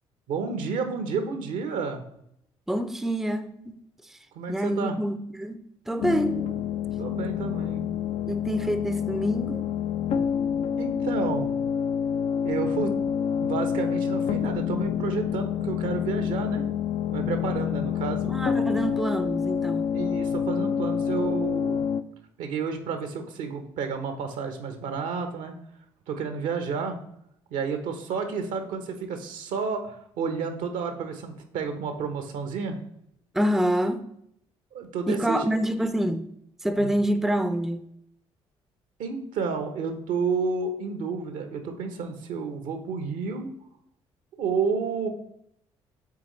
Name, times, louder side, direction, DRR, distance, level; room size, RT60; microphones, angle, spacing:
voice 1, 0.3-2.0 4.3-5.0 7.0-7.9 10.1-10.2 10.8-11.5 12.4-12.9 13.4-16.6 17.1-18.3 19.9-21.8 22.4-25.5 26.1-27.0 27.5-32.8 34.7-35.4 36.8-37.0 39.0-43.5 44.4-45.1, right 5 dB, 70° right, 0.9 m, -30 dB
voice 2, 2.7-3.8 4.5-6.4 8.3-9.7 18.2-19.8 33.3-34.0 35.1-36.3 36.6-37.8, equal, ahead, 0.5 m, -26 dB
sound 1, 6.0-22.0, left 8 dB, 55° left, 0.4 m, -27 dB
8.5 x 3.7 x 3.1 m
hypercardioid pair, 50°, 13 cm